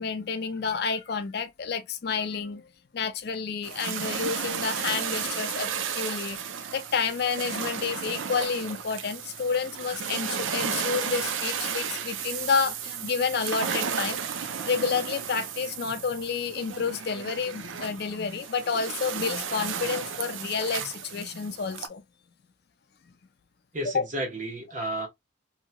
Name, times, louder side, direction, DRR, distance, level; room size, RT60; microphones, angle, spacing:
voice 1, 0.0-2.6 2.9-6.4 6.7-14.2 14.6-22.0 23.9-24.0, left 5 dB, 55° left, 0.4 m, -30 dB
sound 1, 3.6-21.9, right 7 dB, 80° right, 0.5 m, -33 dB
voice 2, 23.7-25.1, right 1 dB, 40° right, 1.1 m, -32 dB
2.8 x 2.8 x 2.2 m
head